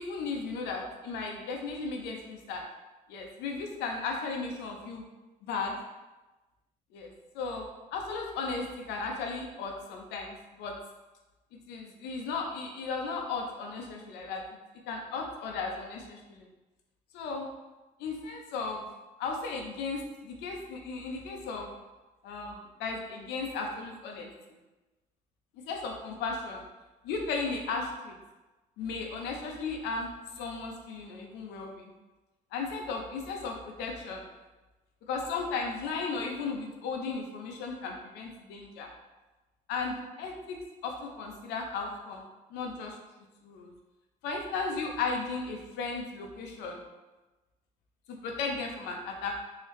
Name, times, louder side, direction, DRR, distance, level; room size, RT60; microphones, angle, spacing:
voice 1, 0.0-2.6 3.1-5.1 5.5-5.8 6.9-10.8 11.7-14.4 14.9-16.5 17.1-17.5 18.0-18.9 19.2-21.7 22.2-24.3 25.5-26.6 27.0-28.2 28.8-30.1 30.3-31.9 32.5-34.2 35.1-38.9 39.7-40.6 40.8-43.0 43.4-43.7 44.2-46.8 48.1-49.4, left 4 dB, 85° left, 1 dB, 0.6 m, -35 dB
3.1 x 2.8 x 3.1 m, 1.1 s
cardioid pair, 110°, 17 cm